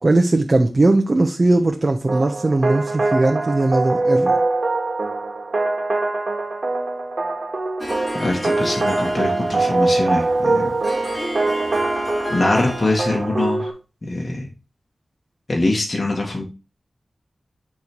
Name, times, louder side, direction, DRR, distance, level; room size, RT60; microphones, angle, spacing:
voice 1, 0.0-4.4, right 2 dB, 45° right, 0.9 m, -18 dB
sound 1, 2.1-13.7, right 2 dB, 65° right, 1.9 m, -23 dB
Harp, 7.8-13.3, equal, 25° left, 3.0 m, -31 dB
voice 2, 8.2-10.7 12.3-13.7 14.1-14.5 15.5-16.4, left 2 dB, 45° left, 1.9 m, -23 dB
9.8 x 3.5 x 4.6 m
cardioid pair, 50°, 0 cm